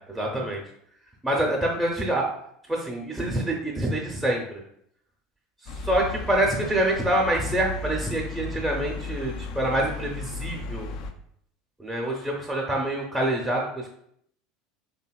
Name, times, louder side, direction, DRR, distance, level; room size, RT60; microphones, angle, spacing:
voice 1, 0.1-0.6 1.2-2.3 2.7-4.6 5.6-10.9 11.8-13.9, right 1 dB, 5° right, -1 dB, 0.6 m, -26 dB
sound 1, 5.7-11.1, left 3 dB, 60° left, 0.3 m, -35 dB
2.7 x 2.7 x 2.3 m, 0.69 s
hypercardioid pair, 80°, 0 cm